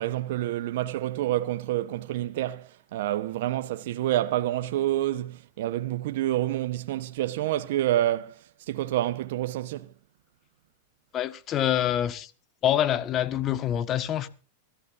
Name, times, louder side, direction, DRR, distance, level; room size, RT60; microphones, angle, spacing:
voice 1, 0.0-9.9, right 14 dB, 70° right, 1.1 m, -28 dB
voice 2, 11.1-12.3 12.6-14.3, left 11 dB, 35° left, 1.4 m, -26 dB
23.0 x 14.0 x 2.6 m
hypercardioid pair, 120°, 0 cm